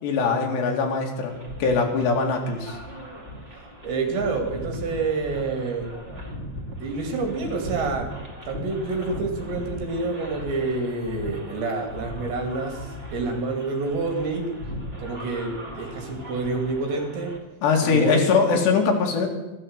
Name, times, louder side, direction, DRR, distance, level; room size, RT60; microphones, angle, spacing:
voice 1, 0.0-2.8 17.6-19.3, left 5 dB, 65° left, 2 dB, 4.1 m, -22 dB
sound 1, 1.3-17.4, equal, 50° right, 0.7 m, -38 dB
voice 2, 3.8-5.9 6.8-8.1 8.5-14.4 15.0-17.3 17.8-18.4, right 3 dB, 65° right, 3 dB, 4.6 m, -28 dB
13.5 x 12.0 x 8.1 m, 1.1 s
omnidirectional pair, 5.5 m